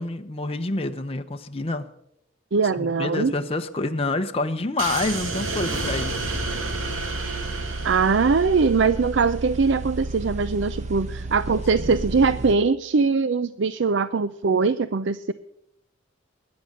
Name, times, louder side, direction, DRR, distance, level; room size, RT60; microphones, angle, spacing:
voice 1, 0.0-1.9 2.8-6.2, left 2 dB, 30° left, 6 dB, 0.8 m, -27 dB
voice 2, 2.5-3.3 7.8-15.3, right 4 dB, 60° right, 14 dB, 0.5 m, -21 dB
sound 1, 4.8-9.1, right 3 dB, 80° right, 2.4 m, -31 dB
sound 2, 5.1-6.9, equal, 20° right, 4.4 m, -42 dB
sound 3, 6.0-12.5, right 2 dB, 35° right, 1.0 m, -33 dB
21.0 x 9.6 x 6.5 m, 0.79 s
head